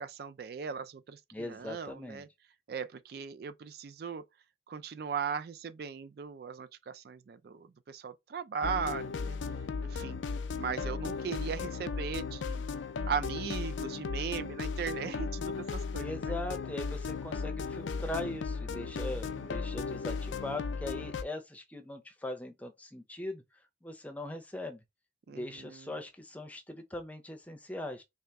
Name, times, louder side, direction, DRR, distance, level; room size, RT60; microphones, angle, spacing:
voice 1, 0.0-2.3 2.7-4.2 4.7-9.4 9.8-10.2 10.6-12.6 13.1-16.3 19.1-19.6 25.3-25.9, right 6 dB, 55° right, 0.3 m, -38 dB
voice 2, 1.3-2.2 16.0-23.4 23.8-24.8 25.3-28.0, left 1 dB, 10° left, 0.6 m, -40 dB
sound 1, 8.6-21.2, left 5 dB, 90° left, 0.4 m, -36 dB
3.1 x 2.9 x 3.4 m
head